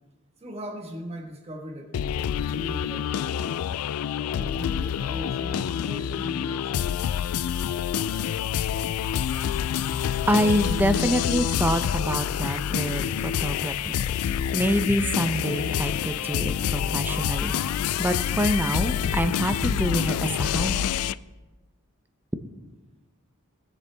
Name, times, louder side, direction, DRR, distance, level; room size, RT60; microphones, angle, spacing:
voice 1, 0.4-3.5 4.2-7.2, equal, 30° right, 2 dB, 1.4 m, -39 dB
sound 1, 1.9-21.1, left 9 dB, 80° left, 0.3 m, -27 dB
voice 2, 10.3-20.9, equal, 10° right, 8 dB, 0.6 m, -26 dB
19.0 x 6.8 x 3.4 m, 1.1 s
head